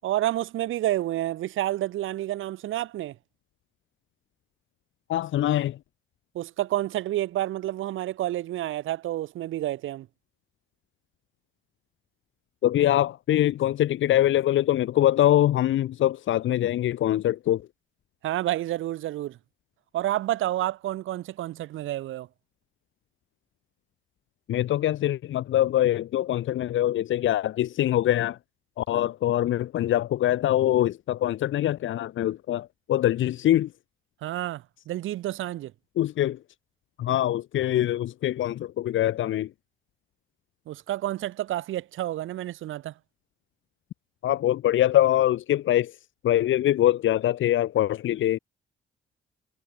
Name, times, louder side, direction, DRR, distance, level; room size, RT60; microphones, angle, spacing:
voice 1, 0.0-3.2 6.3-10.1 18.2-19.4 19.9-22.3 34.2-35.7 40.7-42.9, right 14 dB, 85° right, 6.2 m, -29 dB
voice 2, 5.1-5.8 12.6-17.6 24.5-28.4 28.8-33.7 36.0-36.4 37.0-39.5 44.2-45.9 46.2-48.4, left 13 dB, 75° left, 2.7 m, -23 dB
cardioid pair, 90°, 20 cm